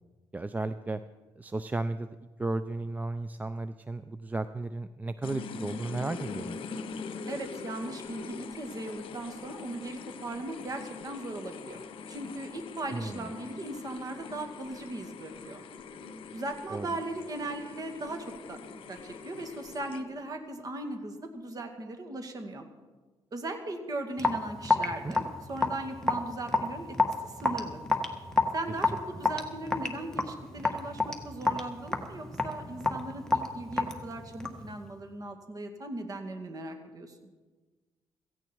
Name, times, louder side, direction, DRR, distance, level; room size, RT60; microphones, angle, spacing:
voice 1, 0.3-1.0 1.4-2.1 2.4-6.6 12.9-13.3 16.7-16.9 25.0-25.1, right 2 dB, 15° right, 12 dB, 0.5 m, -34 dB
sound 1, 5.2-20.3, left 5 dB, 70° left, 1.0 m, -43 dB
voice 2, 7.3-15.6 16.3-18.6 18.9-22.7 23.3-26.9 27.2-27.8 28.5-37.2, right 2 dB, 40° right, 5 dB, 2.2 m, -38 dB
Raindrop / Drip, 24.2-34.7, left 3 dB, 5° left, 1.6 m, -29 dB
16.5 x 15.5 x 4.6 m, 1.3 s
cardioid pair, 105°, 9 cm